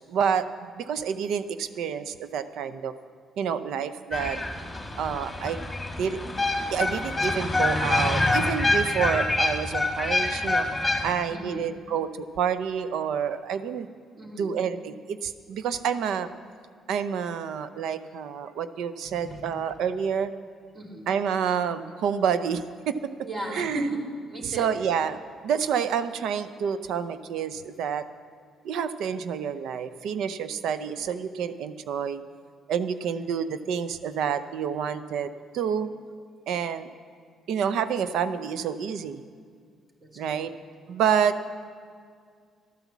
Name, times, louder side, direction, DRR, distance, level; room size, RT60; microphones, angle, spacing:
voice 1, 0.1-0.5 0.8-2.9 3.4-4.4 5.0-5.6 6.0-6.2 6.7-10.7 11.0-13.9 14.4-16.3 16.9-20.3 21.1-22.9 23.5-23.9 24.6-25.2 25.4-28.1 28.6-32.2 32.7-35.3 35.5-35.9 36.5-36.9 37.5-39.2 40.2-40.5 40.9-41.4, right 7 dB, 75° right, 12 dB, 0.5 m, -28 dB
sound 1, 4.1-11.1, left 2 dB, 15° left, 1.9 m, -26 dB
voice 2, 11.3-11.7 14.2-14.6 19.0-19.4 20.7-21.1 23.2-24.8 33.0-33.2 40.0-40.6, right 1 dB, 30° right, 0 dB, 2.6 m, -36 dB
12.5 x 9.1 x 7.2 m, 2.1 s
supercardioid pair, 75°, 0 cm